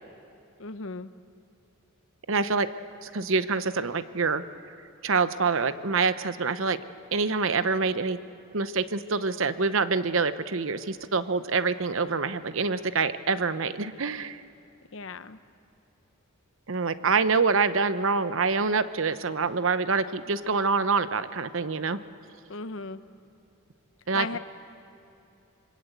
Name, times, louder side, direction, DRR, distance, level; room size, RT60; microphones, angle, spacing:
voice 1, 0.6-1.1 14.9-15.4 22.5-23.0 24.1-24.4, left 4 dB, 60° left, 12 dB, 0.8 m, -36 dB
voice 2, 2.3-2.7 3.0-4.4 5.0-6.8 7.1-8.2 8.5-14.4 16.7-22.0 24.1-24.4, right 4 dB, 60° right, 13 dB, 0.8 m, -26 dB
26.0 x 24.0 x 8.1 m, 2.8 s
head